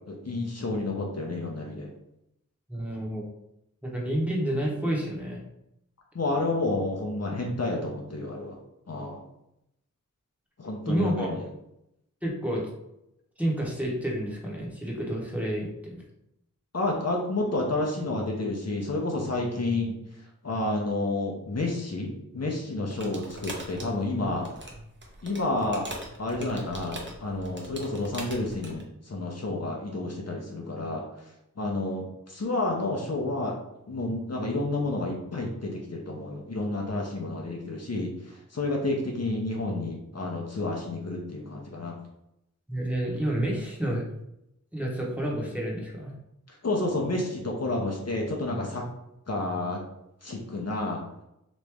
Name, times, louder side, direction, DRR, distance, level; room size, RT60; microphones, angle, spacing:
voice 1, 0.1-1.9 6.1-8.6 8.9-9.2 10.6-11.4 16.7-19.9 20.4-24.5 25.2-25.9 26.2-31.0 31.6-33.6 33.9-41.9 46.5-48.8 49.3-49.8 50.2-51.0, left 2 dB, 50° left, -1 dB, 0.7 m, -30 dB
voice 2, 2.7-3.2 3.8-5.4 10.8-11.4 12.2-12.7 13.4-16.0 42.7-44.1 44.7-46.1, right 1 dB, 5° right, -3 dB, 0.9 m, -29 dB
sound 1, 22.9-28.8, right 1 dB, 35° right, 0.8 m, -41 dB
3.0 x 2.5 x 3.4 m, 0.83 s
wide cardioid pair, 40°, 33 cm